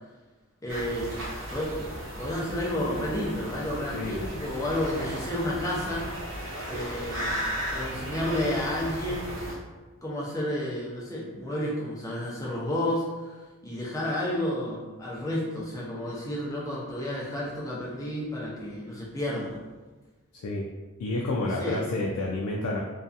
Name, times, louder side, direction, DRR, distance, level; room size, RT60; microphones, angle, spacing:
voice 1, 0.6-1.1 1.5-6.1 6.7-9.4 10.0-13.4 13.6-19.6 21.6-21.8, left 1 dB, 15° left, -5 dB, 0.5 m, -31 dB
sound 1, 0.7-9.5, equal, 60° right, 0.8 m, -35 dB
voice 2, 3.9-4.3 20.3-20.7 21.0-22.8, left 2 dB, 90° left, -1 dB, 0.3 m, -30 dB
2.6 x 2.3 x 2.4 m, 1.2 s
head